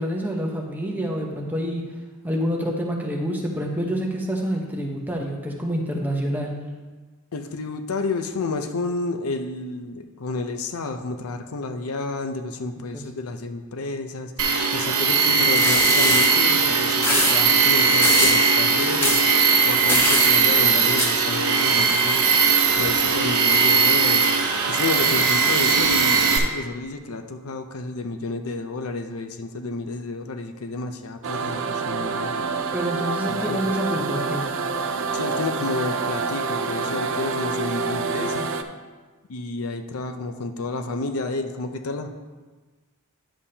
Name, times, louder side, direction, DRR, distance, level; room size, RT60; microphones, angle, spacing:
voice 1, 0.0-1.8 2.2-6.5 12.9-13.0 32.7-34.4, equal, 10° right, -1 dB, 1.0 m, -27 dB
voice 2, 7.3-14.3 14.7-19.2 19.6-22.2 22.8-24.3 24.7-32.3 33.3-33.6 35.1-38.5 39.3-42.1, left 3 dB, 80° left, 7 dB, 0.6 m, -30 dB
Tools, 14.4-26.4, right 5 dB, 85° right, 1.0 m, -19 dB
sound 1, 15.5-16.3 17.0-17.3 18.0-18.4 19.0-19.2 19.9-20.3 21.0-21.1, left 1 dB, 10° left, 1.2 m, -22 dB
sound 2, 31.2-38.6, right 4 dB, 60° right, 0.5 m, -27 dB
10.0 x 7.1 x 2.8 m, 1.3 s
head